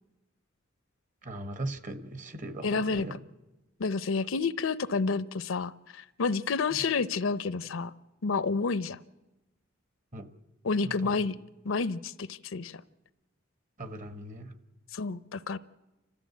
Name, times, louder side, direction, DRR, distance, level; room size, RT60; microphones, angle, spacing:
voice 1, 1.2-3.2 6.7-6.8 10.1-10.3 10.8-11.3 13.8-14.6, right 1 dB, 40° right, 10 dB, 1.2 m, -39 dB
voice 2, 2.6-3.1 3.8-7.9 8.2-9.0 10.6-11.3 11.6-12.8 14.9-15.6, left 4 dB, 80° left, 16 dB, 0.6 m, -29 dB
29.0 x 13.5 x 8.3 m, 1.0 s
head